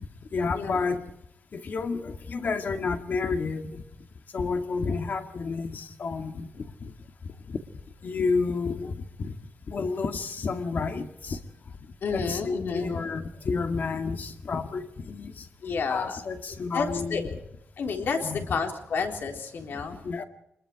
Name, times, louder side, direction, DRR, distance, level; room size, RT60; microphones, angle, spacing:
voice 1, 0.3-1.0 1.5-3.8 4.3-6.9 7.5-7.6 8.0-9.4 9.7-11.4 12.1-15.5 15.9-17.3 18.2-18.6 20.0-20.2, left 4 dB, 50° left, 6 dB, 2.1 m, -30 dB
voice 2, 12.0-13.0 15.6-16.2 16.7-17.4 17.8-20.0, left 5 dB, 70° left, 3 dB, 3.7 m, -30 dB
25.5 x 21.0 x 4.9 m, 0.79 s
wide cardioid pair, 150°, 4 cm